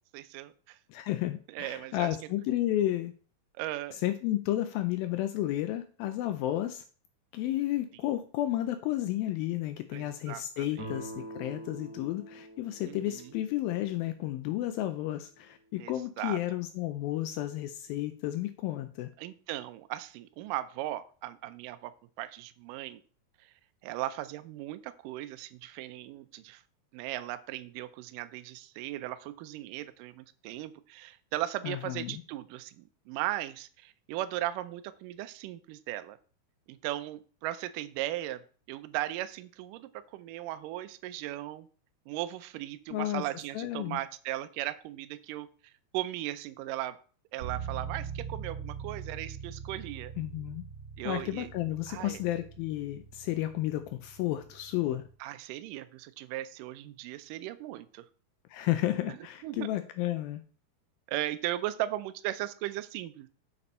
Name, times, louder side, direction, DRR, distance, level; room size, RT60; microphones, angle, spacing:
voice 1, 0.1-0.8 1.5-2.2 3.6-4.0 9.9-10.9 12.8-13.3 15.8-16.4 19.2-21.9 22.2-23.0 23.4-23.5 23.8-26.6 26.9-36.2 36.7-41.7 42.1-45.5 45.9-47.0 47.3-50.1 51.0-51.5 51.9-52.2 55.2-58.1 59.1-59.2 59.4-59.7 61.1-63.3, right 15 dB, 85° right, 11 dB, 1.9 m, -37 dB
voice 2, 0.9-3.1 3.9-6.8 7.3-19.1 31.6-32.2 42.9-43.2 43.5-44.0 50.2-50.6 51.0-55.0 58.5-60.4, left 14 dB, 80° left, 9 dB, 2.2 m, -32 dB
sound 1, 10.7-14.4, right 1 dB, 5° right, 2.0 m, -45 dB
sound 2, 47.4-55.1, right 7 dB, 65° right, 1.2 m, -42 dB
7.0 x 6.8 x 4.2 m, 0.41 s
omnidirectional pair, 4.5 m